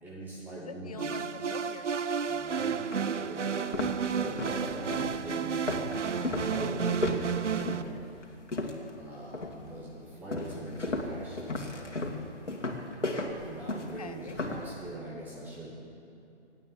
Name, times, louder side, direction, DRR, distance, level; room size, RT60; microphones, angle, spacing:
voice 1, 0.0-1.2 2.3-5.9 6.3-8.0 9.0-11.9 13.4-15.8, right 1 dB, 5° right, -6 dB, 1.2 m, -42 dB
voice 2, 0.6-2.3 14.0-14.4, left 5 dB, 35° left, 12 dB, 0.4 m, -45 dB
sound 1, 1.0-7.8, right 6 dB, 90° right, 0.7 m, -32 dB
sound 2, 2.3-2.4 2.9-3.0 3.5-9.0 9.3-9.7 10.3-14.7, left 2 dB, 85° left, 2.2 m, -35 dB
16.5 x 9.1 x 7.7 m, 2.8 s
figure-of-eight pair, 150°, 35 cm